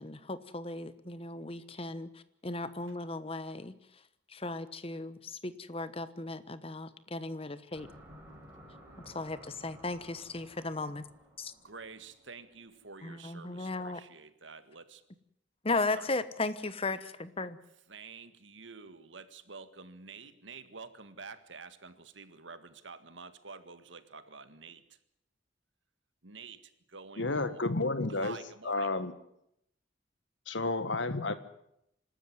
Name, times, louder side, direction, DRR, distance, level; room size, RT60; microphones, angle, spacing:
voice 1, 0.0-4.0 4.3-7.9 9.0-11.0 11.4-11.5 13.0-14.0 15.6-17.6, left 3 dB, 30° left, 14 dB, 1.2 m, -36 dB
sound 1, 7.7-13.0, equal, 10° right, 5.8 m, -55 dB
voice 2, 11.6-15.0 15.7-16.1 17.9-25.0 26.2-27.6 28.1-28.9, right 4 dB, 80° right, 11 dB, 1.8 m, -49 dB
voice 3, 27.2-28.4 28.6-29.1 30.5-31.4, left 2 dB, 75° left, 12 dB, 1.7 m, -31 dB
26.0 x 13.0 x 9.6 m, 0.78 s
head